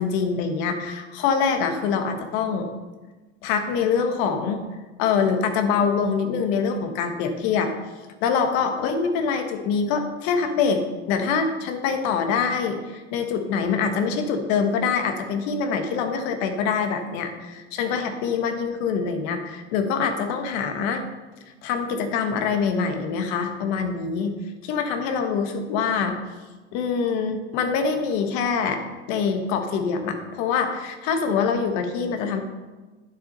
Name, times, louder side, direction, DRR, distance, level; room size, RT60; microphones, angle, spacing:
voice 1, 0.0-2.7 3.4-4.6 5.0-7.7 8.2-21.0 21.6-24.3 24.6-26.2 26.7-28.8 29.1-32.4, left 6 dB, 70° left, 5 dB, 1.6 m, -24 dB
9.7 x 7.4 x 5.5 m, 1.2 s
supercardioid pair, 95°, 34 cm